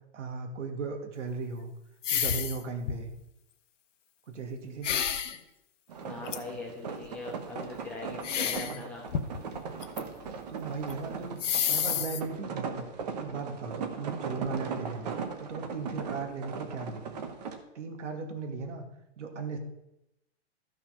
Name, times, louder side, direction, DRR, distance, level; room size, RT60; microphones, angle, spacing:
voice 1, 0.1-1.7 2.1-3.1 4.3-4.9 8.5-8.8 10.3-12.9 13.2-17.0 17.7-18.8 19.2-19.6, right 4 dB, 85° right, 4 dB, 2.3 m, -37 dB
sound 1, 2.0-2.6 2.9-3.2 4.8-5.4 6.3-6.4 8.2-8.8 9.1-10.0 10.3-10.4 10.9-11.0 11.4-12.2, left 9 dB, 90° left, 1.2 m, -29 dB
sound 2, 5.9-17.6, right 6 dB, 35° right, 1.1 m, -38 dB
voice 2, 6.0-9.1, left 3 dB, 5° left, -4 dB, 1.1 m, -41 dB
13.5 x 5.9 x 5.8 m, 0.86 s
hypercardioid pair, 175°, 35 cm